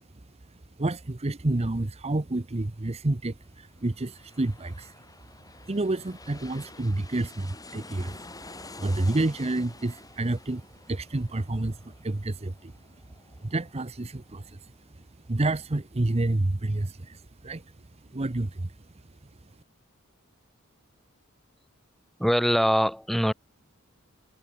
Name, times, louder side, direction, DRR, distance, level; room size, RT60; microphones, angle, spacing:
voice 1, 0.8-4.9 5.6-12.7 13.4-15.0 15.3-17.6 18.1-18.7, right 2 dB, 30° right, 0.8 m, -29 dB
sound 1, 3.6-15.0 15.4-15.5, left 3 dB, 15° left, 3.2 m, -49 dB
voice 2, 22.2-23.3, equal, ahead, 1.8 m, -23 dB
head